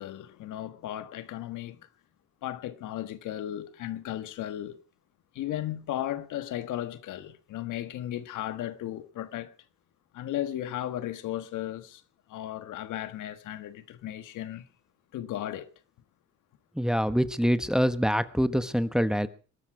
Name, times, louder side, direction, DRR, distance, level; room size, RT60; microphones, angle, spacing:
voice 1, 0.0-1.9 2.4-4.8 5.3-9.5 10.1-12.0 12.3-14.7 15.1-15.7, left 12 dB, 85° left, 1.5 m, -35 dB
voice 2, 16.8-19.3, equal, ahead, 1.2 m, -25 dB
21.5 x 12.5 x 4.8 m
cardioid pair, 90°, 30 cm